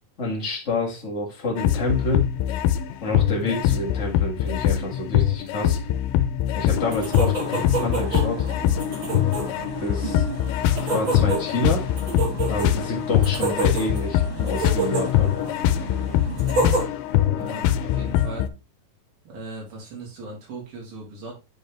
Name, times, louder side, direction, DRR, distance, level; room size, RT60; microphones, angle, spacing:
voice 1, 0.2-2.2 3.0-5.8 6.5-8.5 9.8-10.2 10.9-11.8 12.5-15.3, left 1 dB, 40° left, -1 dB, 1.0 m, -28 dB
sound 1, 1.6-18.5, left 11 dB, 85° left, 2.4 m, -23 dB
sound 2, 6.7-16.8, right 3 dB, 40° right, 2.0 m, -30 dB
voice 2, 17.3-18.5 19.2-21.3, right 2 dB, 75° right, -3 dB, 4.8 m, -38 dB
9.7 x 4.2 x 3.3 m, 0.27 s
omnidirectional pair, 4.2 m